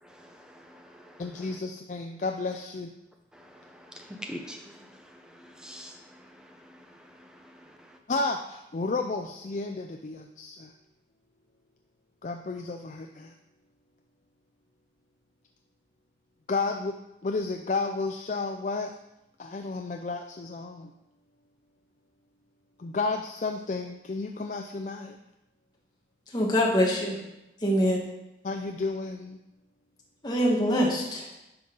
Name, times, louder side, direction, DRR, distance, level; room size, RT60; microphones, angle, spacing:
voice 1, 0.0-1.6 3.3-8.0, equal, 5° right, 3 dB, 0.8 m, -46 dB
voice 2, 1.2-2.9 8.1-10.7 12.2-13.3 16.5-18.9 19.4-20.9 22.8-25.2 28.4-29.4, left 3 dB, 40° left, 4 dB, 0.4 m, -32 dB
voice 3, 26.3-27.2 27.6-28.0 30.2-31.3, equal, 25° left, -3 dB, 1.4 m, -24 dB
10.5 x 5.3 x 3.9 m, 0.89 s
head